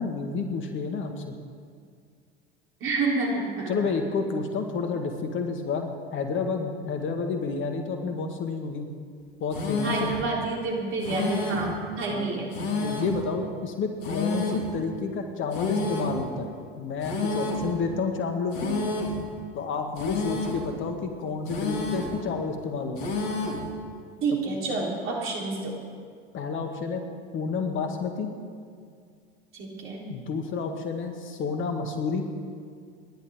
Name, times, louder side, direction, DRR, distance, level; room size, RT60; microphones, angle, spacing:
voice 1, 0.0-1.4 3.7-8.9 9.4-10.1 12.1-12.3 12.8-18.7 19.5-23.2 26.3-27.0 27.3-28.3 30.1-32.2, left 4 dB, 40° left, 4 dB, 1.8 m, -30 dB
voice 2, 2.8-3.7 9.8-12.5 24.2-25.7 29.5-30.0, right 3 dB, 45° right, -2 dB, 3.9 m, -28 dB
sound 1, 9.5-10.2 11.0-11.7 12.5-13.2 14.0-14.7 15.5-16.2 17.0-17.7 18.5-19.2 20.0-20.7 21.5-22.2 23.0-23.7, left 3 dB, 55° left, 2.4 m, -29 dB
28.5 x 11.5 x 3.7 m, 2.1 s
figure-of-eight pair, 75°, 30 cm